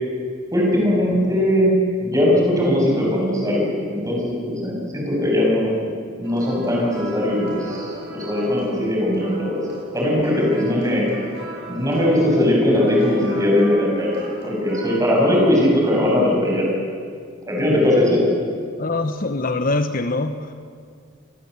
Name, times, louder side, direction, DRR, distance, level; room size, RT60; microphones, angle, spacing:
voice 1, 0.5-1.7 2.0-5.7 6.2-9.6 9.9-11.3 11.7-14.1 14.4-16.7 17.5-18.2, left 1 dB, 15° right, -2 dB, 7.7 m, -19 dB
sound 1, 6.2-15.0, right 1 dB, 55° right, 7.3 m, -35 dB
voice 2, 18.8-20.5, left 2 dB, 45° left, 9 dB, 1.0 m, -23 dB
28.0 x 20.0 x 8.2 m, 2.1 s
head